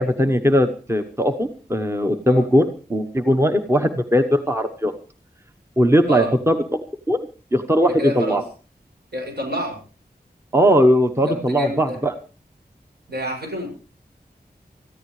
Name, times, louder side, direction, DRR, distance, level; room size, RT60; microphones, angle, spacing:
voice 1, 0.0-4.9 5.8-6.6 7.1-7.2 7.5-8.4 10.5-12.1, equal, 15° right, 7 dB, 1.1 m, -19 dB
voice 2, 7.8-8.4 9.1-9.8 11.2-12.0 13.1-13.7, left 1 dB, 75° right, 1 dB, 6.9 m, -28 dB
24.5 x 14.5 x 3.3 m, 0.36 s
wide cardioid pair, 65°, 17 cm